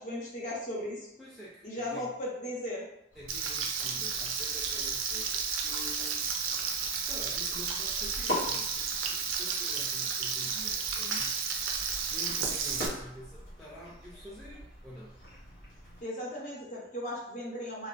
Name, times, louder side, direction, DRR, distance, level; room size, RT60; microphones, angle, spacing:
voice 1, 0.0-1.1 1.6-2.9 16.0-17.9, left 1 dB, 40° left, -4 dB, 0.7 m, -36 dB
voice 2, 1.2-2.2 3.2-6.3 7.0-11.5 12.1-15.3, equal, ahead, -9 dB, 0.3 m, -48 dB
sound 1, 3.1-16.0, left 1 dB, 85° left, 1.1 m, -43 dB
Frying (food), 3.3-12.9, right 6 dB, 90° right, 0.4 m, -32 dB
2.3 x 2.2 x 2.4 m, 0.81 s
head